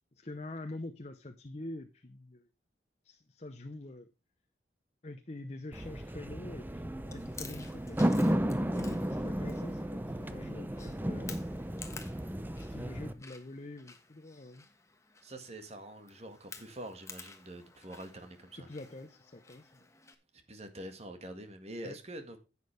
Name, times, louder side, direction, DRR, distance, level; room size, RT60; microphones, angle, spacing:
voice 1, 0.1-2.4 3.0-4.1 5.0-11.4 12.5-14.6 18.5-19.9 21.8-22.0, left 2 dB, 40° left, 0.9 m, -45 dB
sound 1, 5.7-13.1, equal, 10° right, 0.6 m, -33 dB
Chewing mastication, 7.0-20.1, left 5 dB, 15° left, 1.3 m, -53 dB
voice 2, 15.2-18.7 20.5-22.4, right 1 dB, 35° right, 1.8 m, -45 dB
11.0 x 8.5 x 3.3 m
head